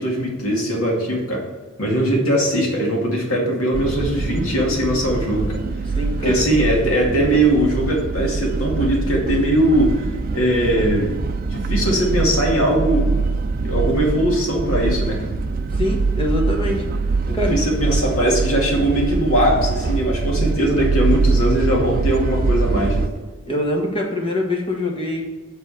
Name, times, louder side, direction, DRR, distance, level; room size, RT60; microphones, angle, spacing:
voice 1, 0.0-1.5 1.8-5.6 6.2-11.1 11.5-13.1 13.6-15.3 17.3-23.1, right 1 dB, 85° left, -1 dB, 2.3 m, -20 dB
sound 1, 3.7-23.1, right 3 dB, 45° right, 0.4 m, -23 dB
voice 2, 5.9-6.5 15.7-16.8 17.3-17.7 23.4-25.2, left 1 dB, 25° left, 0 dB, 1.4 m, -23 dB
8.0 x 4.1 x 6.9 m, 1.3 s
head